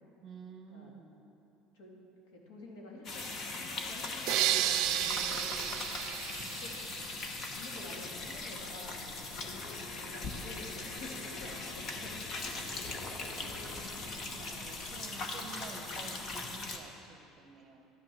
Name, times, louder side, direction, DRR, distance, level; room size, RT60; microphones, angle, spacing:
voice 1, 0.2-1.2 9.3-9.7 12.8-17.9, right 5 dB, 35° right, 4 dB, 1.1 m, -52 dB
voice 2, 2.3-5.6 6.6-6.7 7.5-9.5 9.9-12.2, left 2 dB, 80° left, -1 dB, 2.5 m, -49 dB
sound 1, 3.0-16.8, left 3 dB, 35° left, 1.0 m, -40 dB
sound 2, 4.3-7.3, right 14 dB, 55° right, 0.4 m, -32 dB
11.5 x 9.6 x 6.1 m, 2.8 s
cardioid pair, 160°, 0 cm